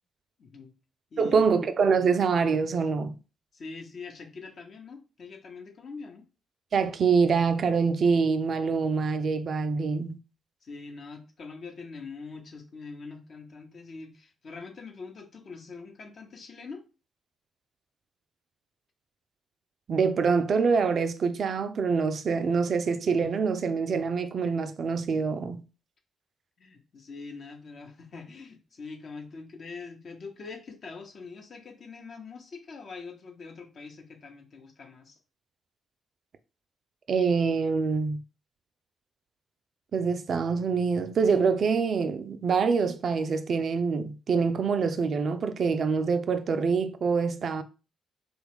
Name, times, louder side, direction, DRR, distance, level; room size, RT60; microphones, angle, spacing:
voice 1, 0.4-0.7 1.1-1.5 3.5-6.3 10.6-16.8 26.6-35.2, left 4 dB, 55° left, 0.8 m, -43 dB
voice 2, 1.2-3.2 6.7-10.2 19.9-25.6 37.1-38.2 39.9-47.6, right 5 dB, 55° right, 0.3 m, -25 dB
2.9 x 2.3 x 3.4 m
hypercardioid pair, 40°, 0 cm